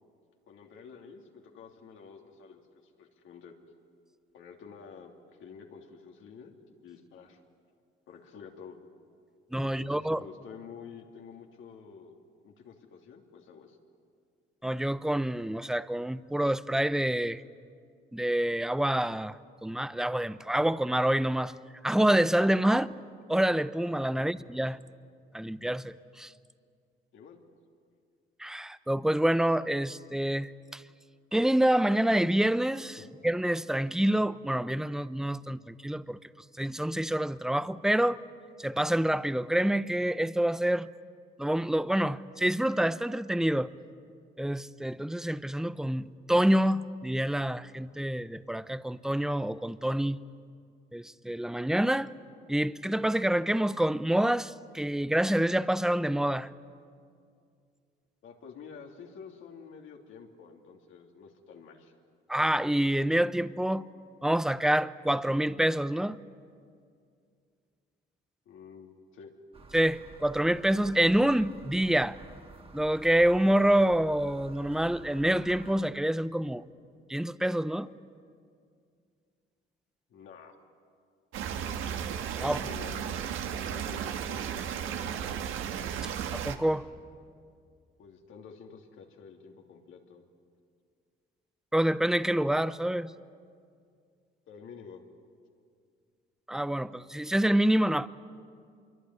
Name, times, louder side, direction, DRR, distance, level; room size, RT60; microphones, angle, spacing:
voice 1, 0.5-2.6 3.0-3.6 4.3-5.1 5.4-6.5 6.8-7.4 8.1-8.8 9.6-13.8 24.1-24.3 27.1-27.4 33.0-33.1 58.2-61.9 68.4-69.3 80.1-80.6 82.4-85.1 88.0-90.2 94.5-95.0, left 6 dB, 80° left, 3.0 m, -49 dB
voice 2, 9.5-10.2 14.6-17.4 18.1-19.4 19.6-21.5 21.8-22.9 23.3-24.8 25.3-26.3 28.4-30.8 31.3-36.2 36.6-38.2 38.6-40.9 41.4-43.7 44.4-50.2 50.9-52.1 52.5-56.5 62.3-63.9 64.2-66.2 69.7-72.2 72.7-76.6 77.1-77.9 82.4-82.6 86.3-86.9 91.7-93.1 96.5-98.1, right 1 dB, 5° right, 0.7 m, -27 dB
sound 1, 69.5-75.8, right 3 dB, 30° right, 2.1 m, -50 dB
sound 2, 81.3-86.6, right 8 dB, 90° right, 1.5 m, -34 dB
26.0 x 23.5 x 9.7 m
cardioid pair, 90°, 20 cm